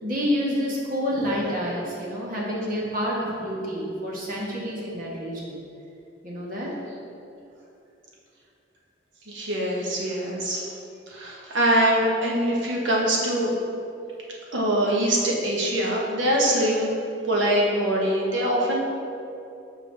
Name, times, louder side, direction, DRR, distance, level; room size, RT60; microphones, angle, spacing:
voice 1, 0.0-5.6 6.2-6.7, equal, 45° right, -4 dB, 1.3 m, -28 dB
voice 2, 9.3-10.7 11.1-13.5 14.5-16.9 17.2-18.8, right 1 dB, 70° right, -3 dB, 1.2 m, -23 dB
6.7 x 4.8 x 3.4 m, 2.7 s
head